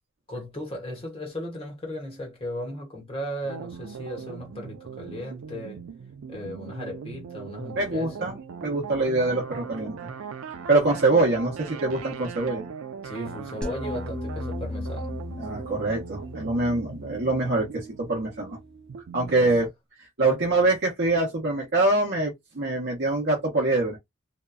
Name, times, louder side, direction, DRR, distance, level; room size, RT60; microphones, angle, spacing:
voice 1, 0.3-5.8 6.3-8.3 13.0-15.1 19.4-19.5, equal, 30° left, 1.2 m, -36 dB
sound 1, 3.4-19.6, right 6 dB, 85° right, 0.4 m, -40 dB
voice 2, 7.8-8.4 8.6-10.1 10.5-12.7 15.4-18.6 19.1-19.7 20.2-24.0, right 2 dB, 55° right, 0.8 m, -24 dB
sound 2, 13.6-18.8, left 2 dB, 5° left, 0.4 m, -37 dB
2.8 x 2.2 x 2.3 m
head